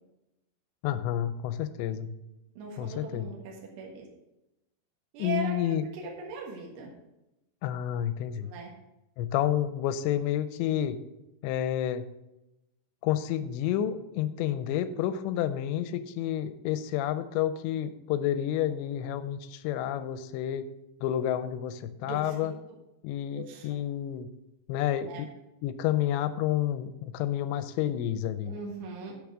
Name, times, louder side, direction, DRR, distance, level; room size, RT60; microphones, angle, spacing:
voice 1, 0.8-2.1 2.8-3.3 5.2-5.8 7.6-8.5 9.2-11.0 11.4-12.1 13.0-20.7 21.0-22.5 23.0-24.3 24.7-25.3 25.6-28.5, left 11 dB, 80° left, 12 dB, 2.7 m, -30 dB
voice 2, 2.6-4.1 5.1-6.9 8.4-8.7 22.0-22.4 23.3-23.7 25.1-25.2 28.5-29.3, right 4 dB, 70° right, -2 dB, 3.6 m, -39 dB
10.5 x 6.0 x 5.0 m, 0.92 s
omnidirectional pair, 5.4 m